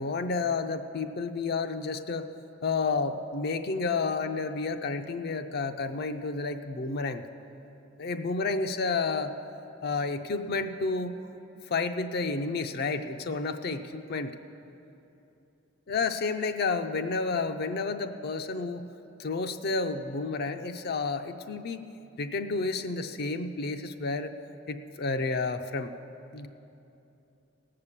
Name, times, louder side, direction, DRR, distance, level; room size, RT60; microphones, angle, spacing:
voice 1, 0.0-2.3 2.6-7.2 8.0-9.3 9.8-11.2 11.7-14.3 15.9-18.9 19.2-21.8 22.2-24.3 24.7-25.9 26.3-26.5, left 4 dB, 55° left, 7 dB, 0.5 m, -30 dB
17.5 x 6.7 x 7.3 m, 2.8 s
head